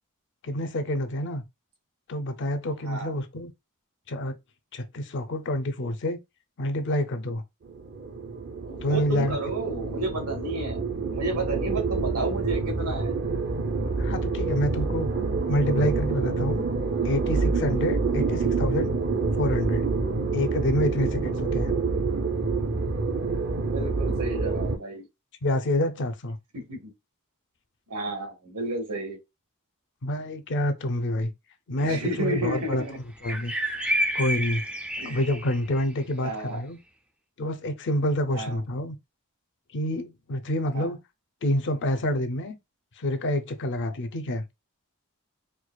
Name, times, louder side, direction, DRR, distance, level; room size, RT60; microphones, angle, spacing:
voice 1, 0.4-1.4 2.1-3.5 4.1-4.3 4.7-6.2 6.6-7.4 8.8-9.4 14.0-15.1 15.5-16.6 17.0-19.0 19.3-19.8 20.3-21.7 25.4-26.4 30.0-31.3 31.7-32.8 33.2-33.5 34.1-34.6 35.0-36.8 37.4-39.0 39.7-41.0 41.4-42.5 43.0-44.4, left 1 dB, 55° left, 0.6 m, -27 dB
sound 1, 7.6-24.8, right 4 dB, 50° right, 0.6 m, -27 dB
voice 2, 8.6-13.1 18.2-18.4 20.5-20.7 23.5-25.1 26.5-26.9 27.9-29.2 31.8-33.0 35.0-35.2 36.2-36.6 38.3-38.6 40.7-40.9, right 2 dB, 85° right, 1.5 m, -32 dB
sound 2, 31.8-32.0 33.2-35.8, equal, 5° right, 0.4 m, -29 dB
4.6 x 2.3 x 2.3 m
head